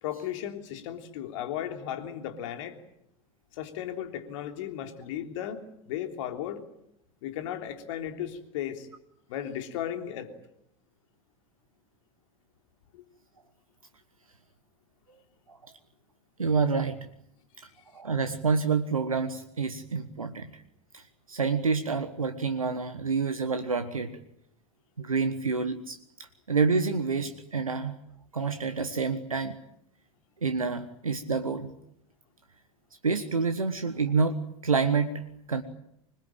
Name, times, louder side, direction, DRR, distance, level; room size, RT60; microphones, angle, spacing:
voice 1, 0.0-2.8 3.5-6.6 7.2-8.9 9.3-10.3 12.9-13.0 17.6-17.7, left 10 dB, 65° left, 5 dB, 3.4 m, -35 dB
voice 2, 16.4-17.0 17.9-20.6 20.9-24.2 25.0-28.0 28.3-29.6 30.4-31.7 33.0-35.6, right 4 dB, 85° right, 9 dB, 1.4 m, -28 dB
25.5 x 21.5 x 9.0 m, 0.76 s
figure-of-eight pair, 75°, 17 cm